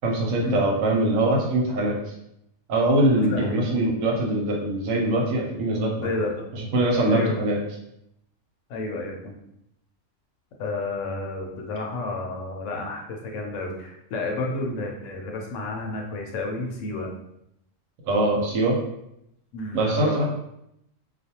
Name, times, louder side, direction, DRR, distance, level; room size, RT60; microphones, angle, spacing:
voice 1, 0.0-2.0 2.7-6.1 6.5-7.6 18.0-18.8 19.7-20.3, right 1 dB, 90° right, -1 dB, 1.0 m, -22 dB
voice 2, 3.2-3.6 6.0-6.5 7.1-7.3 8.7-9.3 10.6-17.1 19.5-20.3, left 2 dB, 75° left, 1 dB, 0.9 m, -31 dB
2.4 x 2.2 x 2.8 m, 0.80 s
omnidirectional pair, 1.4 m